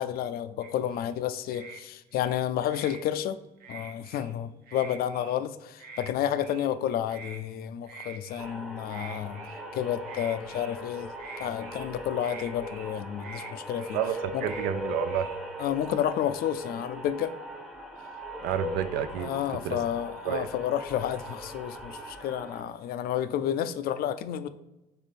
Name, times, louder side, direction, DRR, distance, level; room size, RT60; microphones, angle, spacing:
voice 1, 0.0-3.4 3.7-14.0 14.3-14.4 15.6-17.3 19.2-24.5, left 10 dB, 65° left, 12 dB, 0.4 m, -31 dB
sound 1, 0.6-1.1 1.5-1.8 2.1-3.0 3.6-4.3 4.6-5.4 5.8-6.1 6.4-6.7 7.1-7.4 7.8-8.6 8.9-9.7 10.1-10.8 11.1-11.9 12.2-12.9 13.2-13.5 13.8-14.1 14.4-14.7 15.0-15.7, right 5 dB, 60° right, 0.7 m, -46 dB
sound 2, 8.4-22.6, equal, 5° right, 0.6 m, -40 dB
voice 2, 13.9-15.3 18.4-19.3 19.6-19.8 20.3-20.5, right 10 dB, 85° right, 11 dB, 0.4 m, -30 dB
3.5 x 3.5 x 4.1 m, 0.96 s
cardioid pair, 110°, 17 cm